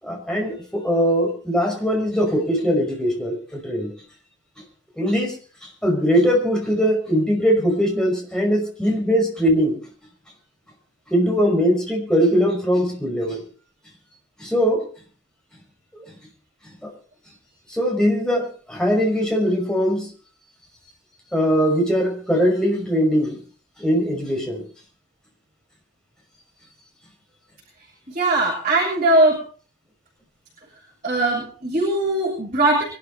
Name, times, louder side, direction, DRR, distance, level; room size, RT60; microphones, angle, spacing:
voice 1, 0.0-3.9 5.0-5.4 5.6-9.8 11.1-13.4 14.4-14.9 15.9-16.0 16.8-16.9 17.7-20.1 21.3-23.4 23.8-24.6, equal, 5° left, 0 dB, 5.6 m, -21 dB
voice 2, 28.1-29.4 31.0-32.8, right 2 dB, 40° right, -3 dB, 6.6 m, -20 dB
24.5 x 12.5 x 4.2 m, 0.40 s
head